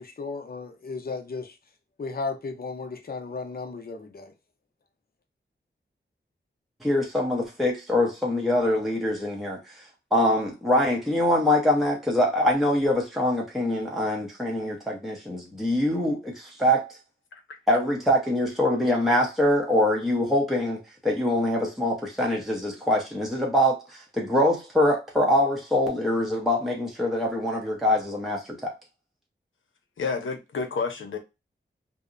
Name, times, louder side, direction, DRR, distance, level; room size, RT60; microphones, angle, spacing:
voice 1, 0.0-1.6 2.0-4.3, left 4 dB, 50° left, 0.6 m, -34 dB
voice 2, 6.8-9.7 10.1-17.0 17.7-28.7, left 1 dB, ahead, 0.7 m, -24 dB
voice 3, 30.0-31.2, left 4 dB, 90° left, 0.7 m, -30 dB
2.7 x 2.1 x 2.5 m
wide cardioid pair, 85°, 20 cm